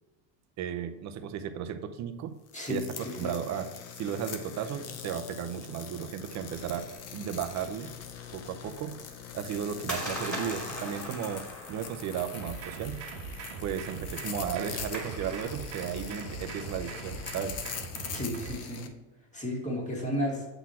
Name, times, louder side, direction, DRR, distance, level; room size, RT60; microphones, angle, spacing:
voice 1, 0.6-2.3 2.7-7.9 8.3-9.0 9.3-13.0 13.6-17.6, right 8 dB, 40° right, 8 dB, 0.6 m, -35 dB
sound 1, 2.5-18.9, left 8 dB, 35° left, 0.6 m, -43 dB
voice 2, 2.5-3.3 18.1-18.9 19.3-20.5, equal, 15° left, -1 dB, 1.7 m, -33 dB
sound 2, 6.2-15.4, right 1 dB, ahead, 2.0 m, -43 dB
sound 3, 12.3-18.5, right 5 dB, 80° right, 1.2 m, -41 dB
7.9 x 4.1 x 4.3 m, 1.2 s
cardioid pair, 155°, 43 cm